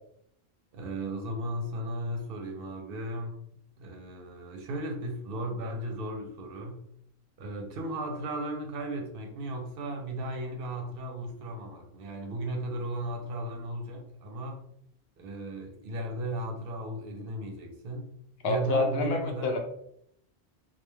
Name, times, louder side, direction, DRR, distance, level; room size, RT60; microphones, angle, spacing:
voice 1, 0.7-3.4 3.8-6.9 7.4-14.6 15.2-18.1 18.4-19.6, right 1 dB, 65° right, 3 dB, 0.7 m, -35 dB
voice 2, 18.4-19.6, left 2 dB, 70° left, 4 dB, 0.8 m, -28 dB
2.3 x 2.1 x 3.1 m, 0.72 s
omnidirectional pair, 1.1 m